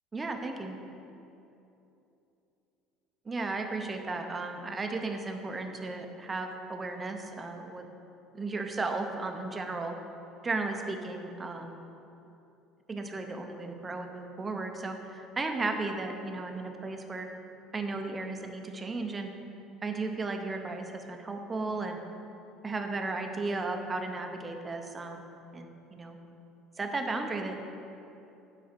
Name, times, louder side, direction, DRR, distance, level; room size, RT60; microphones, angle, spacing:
voice 1, 0.1-0.8 3.3-7.8 8.3-10.0 10.4-11.8 12.9-17.3 17.7-19.3 19.8-22.0 22.6-25.2 25.5-26.2 26.8-27.6, right 3 dB, 20° right, 5 dB, 0.7 m, -35 dB
8.6 x 4.9 x 5.8 m, 2.9 s
cardioid pair, 140°, 0 cm